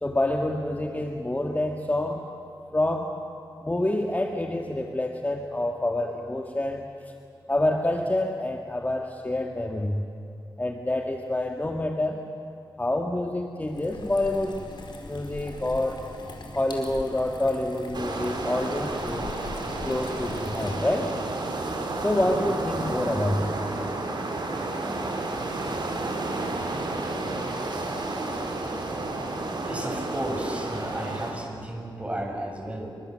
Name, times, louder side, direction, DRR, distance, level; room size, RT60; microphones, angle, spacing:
voice 1, 0.0-2.3 2.7-3.2 3.6-6.9 7.5-10.0 10.6-12.2 12.8-14.6 15.0-16.0 16.5-19.3 19.8-21.1 22.0-23.6, left 1 dB, 20° left, 2 dB, 1.8 m, -27 dB
sound 1, 13.6-21.2, left 2 dB, 60° left, 4.8 m, -41 dB
sound 2, 17.9-31.3, right 2 dB, 55° right, 4.6 m, -31 dB
voice 2, 29.6-32.9, right 1 dB, 15° right, 2 dB, 6.6 m, -33 dB
28.0 x 25.0 x 7.8 m, 2.5 s
cardioid pair, 70°, 9 cm